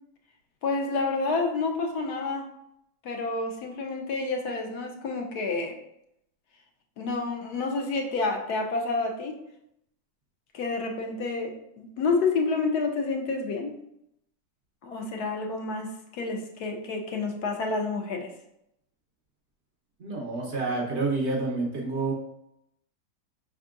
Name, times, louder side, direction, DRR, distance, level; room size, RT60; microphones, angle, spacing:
voice 1, 0.6-2.5 3.0-5.8 7.0-9.4 10.5-13.7 14.8-18.3, left 3 dB, 70° left, 2 dB, 1.2 m, -29 dB
voice 2, 20.0-22.1, right 3 dB, 50° right, -1 dB, 1.0 m, -28 dB
5.4 x 3.6 x 2.4 m, 0.80 s
omnidirectional pair, 1.8 m